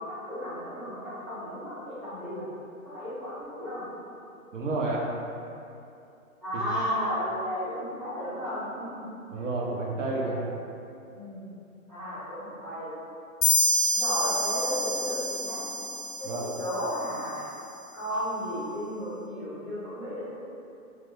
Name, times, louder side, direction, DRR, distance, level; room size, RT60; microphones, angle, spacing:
voice 1, 0.0-2.5 2.8-3.8 6.4-9.5 10.0-10.4 11.1-11.5 11.9-12.9 13.9-15.6 16.2-17.4 17.9-20.2, equal, ahead, -17 dB, 0.7 m, -34 dB
voice 2, 4.5-5.1 6.5-6.6 9.3-10.5 16.3-16.5, right 2 dB, 60° right, -4 dB, 0.6 m, -30 dB
sound 1, 13.4-17.0, left 1 dB, 40° left, 0.4 m, -27 dB
2.9 x 2.0 x 3.1 m, 2.7 s
hypercardioid pair, 135°, 43 cm